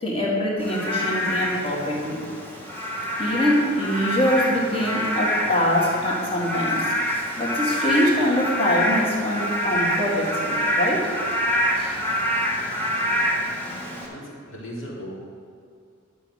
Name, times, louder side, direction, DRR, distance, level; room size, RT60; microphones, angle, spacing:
voice 1, 0.0-2.2 3.2-6.9 7.4-11.1 11.7-12.0, equal, 30° left, -4 dB, 2.2 m, -24 dB
Frog / Rain, 0.6-14.1, equal, 10° left, 2.1 m, -26 dB
voice 2, 13.7-15.1, equal, 70° left, -4 dB, 3.0 m, -38 dB
12.0 x 7.0 x 6.3 m, 2.3 s
head